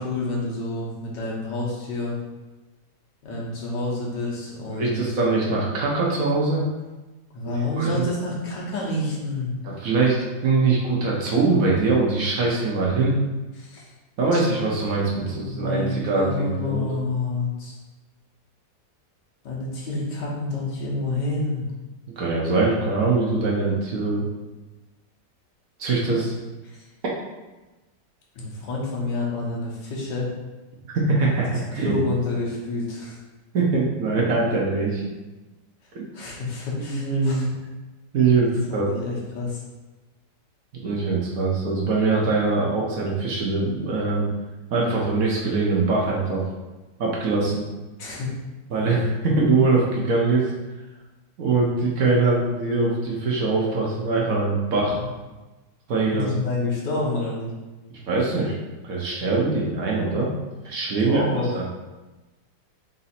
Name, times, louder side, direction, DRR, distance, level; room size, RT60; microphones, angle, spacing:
voice 1, 0.0-2.2 3.2-5.0 7.3-9.5 13.6-13.9 14.3-14.4 15.1-17.8 19.4-21.6 26.6-26.8 28.4-30.3 31.5-33.2 36.1-37.5 38.5-39.6 48.0-48.3 56.1-57.5 61.0-61.5, left 2 dB, 85° left, -4 dB, 1.7 m, -28 dB
voice 2, 4.7-6.6 7.8-8.1 9.6-13.1 14.2-16.9 22.2-24.2 25.8-26.3 30.9-32.0 33.5-35.1 35.9-36.0 36.9-37.5 38.1-38.9 40.8-44.3 44.7-46.5 47.0-47.6 48.7-50.5 51.4-55.0 55.9-56.3 57.9-58.6 58.8-60.3 60.6-61.2 61.5-61.6, right 3 dB, 60° right, -3 dB, 1.1 m, -22 dB
4.0 x 2.6 x 4.1 m, 1.1 s
omnidirectional pair, 1.9 m